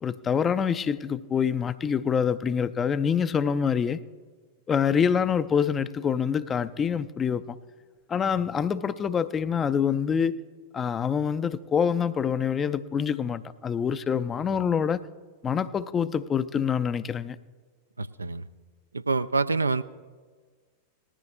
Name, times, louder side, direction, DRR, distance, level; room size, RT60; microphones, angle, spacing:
voice 1, 0.0-4.0 4.7-7.6 8.1-10.4 10.7-15.0 15.4-17.4, left 7 dB, 20° left, 0.4 m, -26 dB
voice 2, 18.0-18.5 18.9-19.8, right 3 dB, 80° right, 0.4 m, -26 dB
19.0 x 13.5 x 2.5 m
figure-of-eight pair, 90°, 0 cm